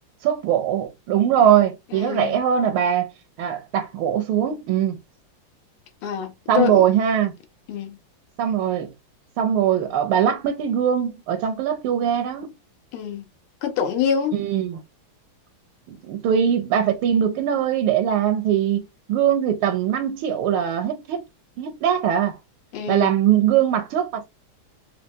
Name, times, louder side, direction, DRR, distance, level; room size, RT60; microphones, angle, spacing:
voice 1, 0.2-3.1 3.4-5.0 6.5-7.3 8.4-8.9 9.4-12.5 14.3-14.8 15.9-18.8 19.1-21.2 21.6-22.4 22.9-24.2, right 9 dB, 80° right, 1.4 m, -21 dB
voice 2, 1.9-2.4 6.0-6.8 7.7-8.0 12.9-13.3 13.6-14.4 22.7-23.1, left 8 dB, 85° left, 1.7 m, -25 dB
4.4 x 2.3 x 2.6 m
omnidirectional pair, 2.3 m